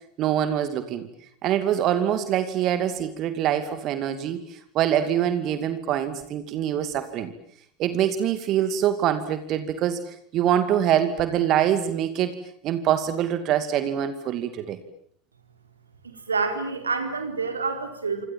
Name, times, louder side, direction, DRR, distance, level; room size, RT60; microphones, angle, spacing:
voice 1, 0.2-1.1 1.4-7.3 7.8-12.4 12.6-14.8, right 10 dB, 45° right, 10 dB, 2.4 m, -24 dB
voice 2, 16.0-18.3, right 4 dB, 85° right, 6 dB, 4.4 m, -28 dB
27.0 x 27.0 x 7.6 m, 0.63 s
figure-of-eight pair, 75°, 0 cm